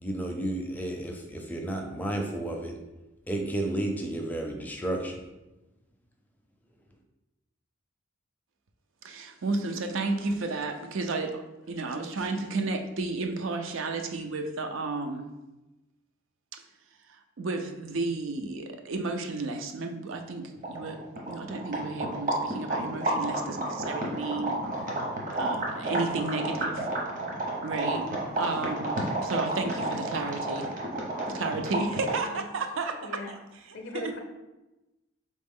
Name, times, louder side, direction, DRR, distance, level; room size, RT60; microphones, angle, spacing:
voice 1, 0.0-2.8 3.3-5.3, right 1 dB, 10° left, 2 dB, 0.4 m, -32 dB
voice 2, 9.0-11.4 11.7-15.3 16.5-16.6 17.1-21.0 21.3-24.9 25.4-26.9 27.6-28.0 28.4-30.7 31.3-33.4 33.7-34.1, right 3 dB, 75° right, 5 dB, 0.5 m, -32 dB
sound 1, 20.6-32.3, right 1 dB, 40° right, 0.9 m, -31 dB
voice 3, 33.0-33.3 33.7-34.2, left 2 dB, 65° left, 3 dB, 0.5 m, -38 dB
3.9 x 3.1 x 3.6 m, 1.0 s
head